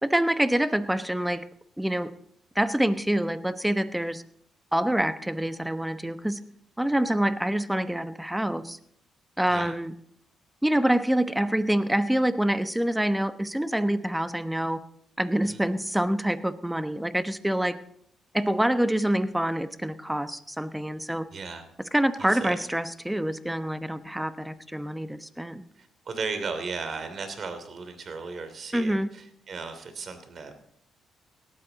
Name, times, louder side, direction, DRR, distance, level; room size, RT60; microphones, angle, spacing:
voice 1, 0.0-1.4 1.8-2.1 2.5-4.2 4.7-6.4 6.8-8.8 9.4-9.9 10.6-14.8 15.2-17.7 18.3-21.3 21.9-25.6 28.7-29.1, right 1 dB, 5° right, 11 dB, 1.0 m, -26 dB
voice 2, 21.3-21.6 22.2-22.6 25.8-30.5, right 4 dB, 55° right, 9 dB, 2.9 m, -36 dB
17.5 x 13.0 x 4.0 m, 0.69 s
supercardioid pair, 65°, 0 cm